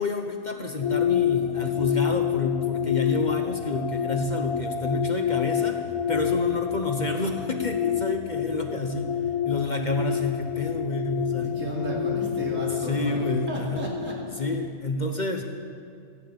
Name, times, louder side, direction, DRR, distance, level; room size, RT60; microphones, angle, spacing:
voice 1, 0.0-9.2 9.4-11.5 12.0-12.1 12.7-13.9 14.4-15.4, left 2 dB, 40° left, 4 dB, 1.0 m, -29 dB
sound 1, 0.8-14.7, left 10 dB, 60° left, 0.3 m, -28 dB
voice 2, 11.4-14.1, right 1 dB, 75° right, -3 dB, 3.3 m, -32 dB
15.5 x 8.9 x 8.6 m, 2.3 s
omnidirectional pair, 1.4 m